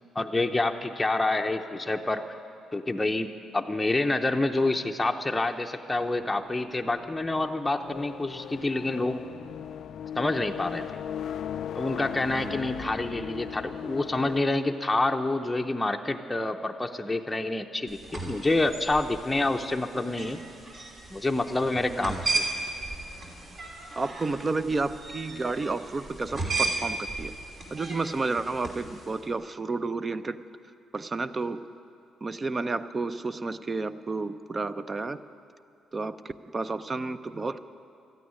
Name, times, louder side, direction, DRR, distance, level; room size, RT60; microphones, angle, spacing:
voice 1, 0.1-2.2 2.7-9.2 10.2-10.8 11.7-20.4 21.1-22.4, left 2 dB, 10° left, 3 dB, 0.7 m, -27 dB
sound 1, 6.0-14.4, left 9 dB, 70° left, 0.3 m, -38 dB
voice 2, 12.3-12.6 21.9-22.2 24.0-27.3 27.7-30.4 30.9-31.6 32.2-35.2 35.9-37.6, right 3 dB, 30° right, 12 dB, 0.5 m, -31 dB
sound 2, 17.9-29.2, right 2 dB, 50° right, 3.0 m, -35 dB
13.5 x 9.2 x 9.8 m, 2.5 s
cardioid pair, 90°, 0 cm